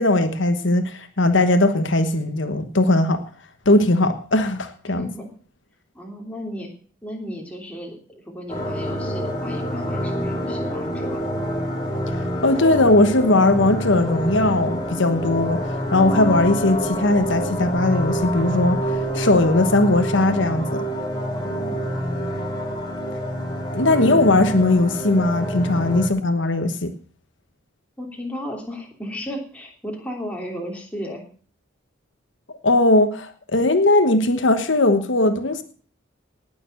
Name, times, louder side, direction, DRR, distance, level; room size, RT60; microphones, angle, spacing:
voice 1, 0.0-3.2 3.6-5.1 12.2-20.8 23.7-26.9 32.6-35.6, left 2 dB, 70° left, 8 dB, 1.2 m, -19 dB
voice 2, 4.8-5.3 5.9-6.7 7.0-11.4 21.3-21.9 28.0-31.2, equal, 5° left, 0 dB, 3.0 m, -34 dB
sound 1, 8.5-26.1, equal, 25° left, 2.9 m, -27 dB
19.0 x 7.0 x 6.6 m, 0.43 s
head